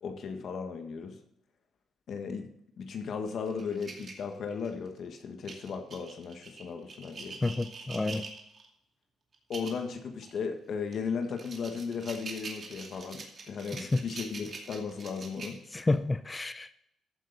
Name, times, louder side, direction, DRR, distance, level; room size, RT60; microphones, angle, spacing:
voice 1, 0.0-1.2 2.1-2.5 2.8-7.4 9.5-15.6, left 5 dB, 60° left, 1.5 m, -36 dB
sound 1, 3.3-4.9 5.4-8.7 9.3-9.8 10.2-10.4 10.9-16.0, right 4 dB, 45° right, 2.4 m, -44 dB
voice 2, 7.4-8.3 13.8-14.0 15.7-16.7, left 2 dB, 20° left, 0.6 m, -29 dB
14.0 x 7.6 x 4.0 m
cardioid pair, 90°, 0 cm